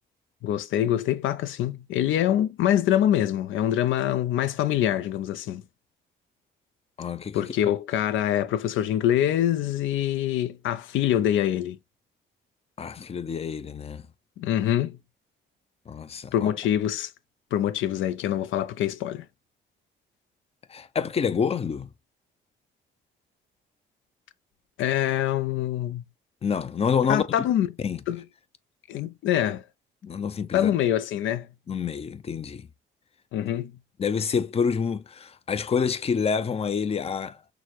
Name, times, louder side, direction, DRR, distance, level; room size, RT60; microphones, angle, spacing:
voice 1, 0.4-5.6 7.3-11.8 14.4-15.0 16.3-17.1 17.5-19.3 24.8-26.0 27.1-27.7 28.1-28.2 28.9-29.6 30.5-31.5 33.3-33.7, left 11 dB, 80° left, 0.5 m, -25 dB
voice 2, 7.0-7.4 12.8-14.0 15.9-16.5 20.7-21.9 26.4-27.2 27.8-28.0 30.0-30.7 31.7-32.7 34.0-37.4, left 6 dB, 30° left, 0.5 m, -27 dB
6.1 x 2.1 x 2.9 m
cardioid pair, 90°, 20 cm